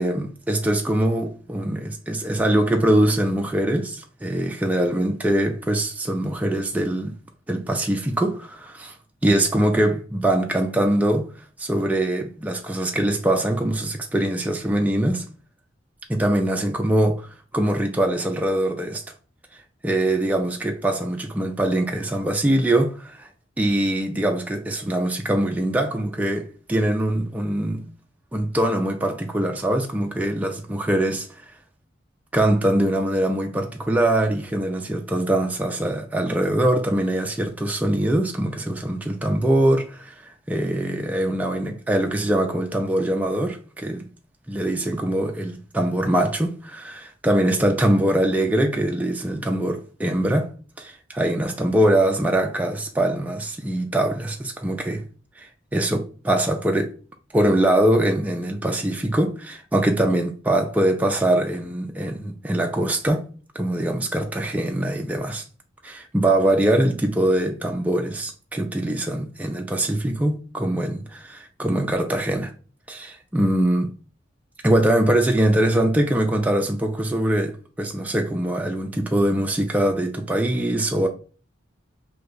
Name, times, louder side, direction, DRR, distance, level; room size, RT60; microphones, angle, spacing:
voice 1, 0.0-7.1 7.5-9.0 9.2-11.3 11.6-15.3 16.1-19.0 19.8-23.3 23.6-27.9 28.3-31.5 32.3-44.1 44.5-55.0 55.4-56.9 57.3-65.4 65.8-72.5 72.9-73.9 74.6-81.1, right 1 dB, 10° right, 0.3 m, -23 dB
2.7 x 2.3 x 3.8 m
head